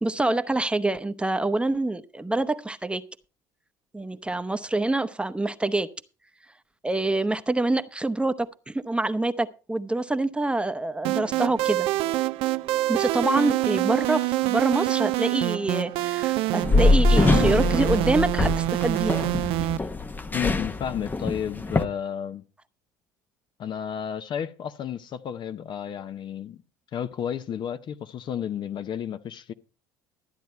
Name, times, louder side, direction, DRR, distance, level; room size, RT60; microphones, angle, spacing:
voice 1, 0.0-3.0 3.9-5.9 6.8-11.9 12.9-19.3, right 2 dB, 10° right, 0.9 m, -26 dB
sound 1, 11.0-19.8, right 17 dB, 65° right, 0.4 m, -26 dB
sound 2, 16.6-21.8, left 2 dB, 20° left, 0.8 m, -23 dB
voice 2, 20.3-22.4 23.6-26.6 26.9-29.5, left 8 dB, 50° left, 0.8 m, -32 dB
13.0 x 9.3 x 4.4 m
hypercardioid pair, 70°, 10 cm